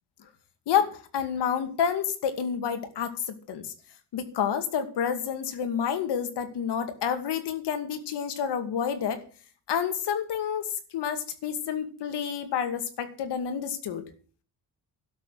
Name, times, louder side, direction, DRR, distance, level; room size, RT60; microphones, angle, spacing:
voice 1, 0.7-3.7 4.1-9.2 9.7-14.0, left 8 dB, 85° left, 8 dB, 2.5 m, -29 dB
12.5 x 7.0 x 9.9 m, 0.40 s
cardioid pair, 170°, 40 cm